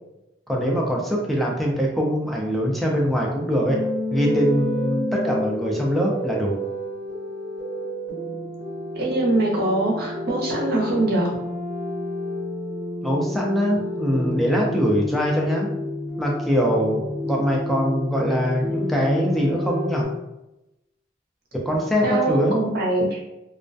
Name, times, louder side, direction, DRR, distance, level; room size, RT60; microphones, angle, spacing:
voice 1, 0.5-3.8 4.1-6.6 13.0-15.7 16.2-20.1 21.7-22.6, equal, ahead, -3 dB, 0.4 m, -23 dB
sound 1, 3.6-20.1, left 1 dB, 15° right, 1.0 m, -30 dB
voice 2, 9.0-11.3 22.0-23.2, right 2 dB, 55° right, -3 dB, 0.7 m, -23 dB
2.2 x 2.1 x 2.5 m, 0.93 s
head